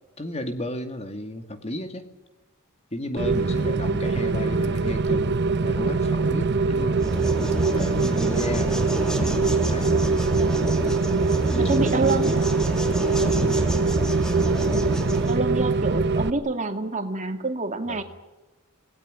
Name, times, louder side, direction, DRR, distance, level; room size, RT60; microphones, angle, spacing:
voice 1, 0.2-2.1 2.9-7.1 7.7-10.2 11.5-12.2 13.0-13.7 17.9-18.0, left 1 dB, 30° left, 8 dB, 2.4 m, -34 dB
Rain, 3.2-16.3, right 3 dB, 50° right, 0.8 m, -23 dB
sound 1, 6.9-15.4, right 1 dB, 5° left, 2.5 m, -29 dB
voice 2, 8.0-8.4 11.5-12.4 14.7-15.0 15.3-18.0, right 2 dB, 35° right, 6 dB, 2.4 m, -27 dB
25.5 x 18.5 x 9.8 m, 1.1 s
head